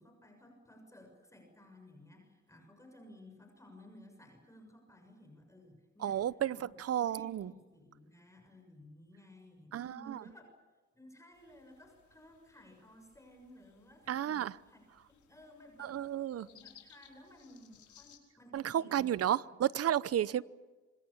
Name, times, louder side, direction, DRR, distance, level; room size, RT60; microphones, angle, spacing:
voice 1, 0.0-6.7 7.1-10.5 10.9-19.3, left 1 dB, 10° left, 6.8 m, -57 dB
voice 2, 6.0-7.5 9.7-10.2 14.1-14.6 15.8-16.5 18.5-20.4, right 10 dB, 50° right, 0.8 m, -32 dB
sound 1, 11.3-18.2, left 9 dB, 75° left, 5.1 m, -63 dB
26.5 x 25.5 x 7.2 m
cardioid pair, 90°, 30 cm